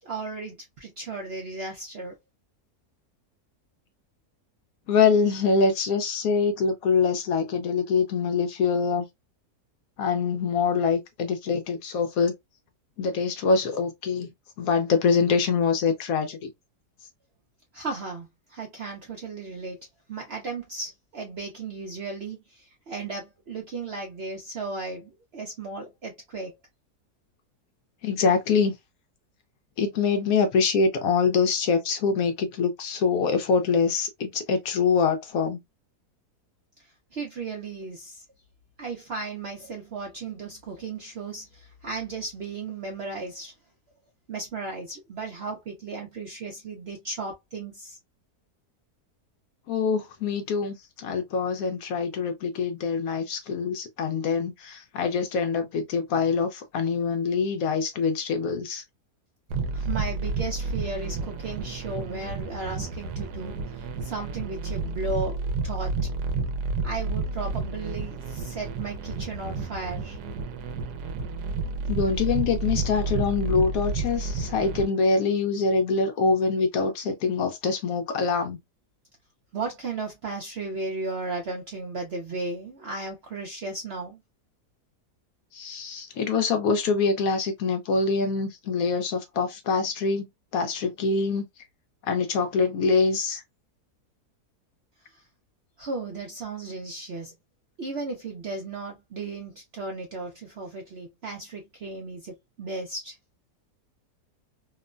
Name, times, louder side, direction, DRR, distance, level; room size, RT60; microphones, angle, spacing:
voice 1, 0.0-2.1 17.7-26.5 37.1-38.2 38.8-43.5 44.3-48.0 59.7-66.0 66.8-70.2 79.5-84.2 95.1-95.2 95.8-97.3 97.8-103.2, right 3 dB, 65° right, 0.6 m, -35 dB
voice 2, 4.9-9.1 10.0-12.3 13.0-14.3 14.6-16.5 28.0-28.7 29.8-35.6 49.7-58.8 71.9-78.6 85.5-90.3 90.5-91.5 92.1-93.4, left 5 dB, 70° left, 1.0 m, -24 dB
sound 1, 59.5-74.9, right 3 dB, 80° right, 1.1 m, -31 dB
2.9 x 2.1 x 2.3 m
omnidirectional pair, 1.7 m